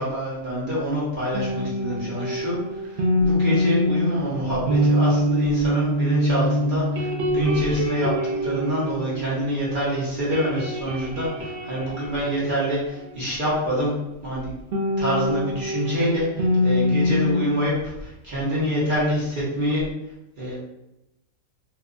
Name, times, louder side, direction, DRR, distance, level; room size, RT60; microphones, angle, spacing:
voice 1, 0.0-8.1 8.4-13.9 14.2-14.5 15.0-19.8 20.4-20.6, equal, 45° right, -8 dB, 0.8 m, -26 dB
sound 1, 1.3-9.8 10.1-13.5 14.7-17.4, left 1 dB, 85° right, 0.4 m, -24 dB
2.8 x 2.1 x 2.4 m, 0.90 s
omnidirectional pair, 1.5 m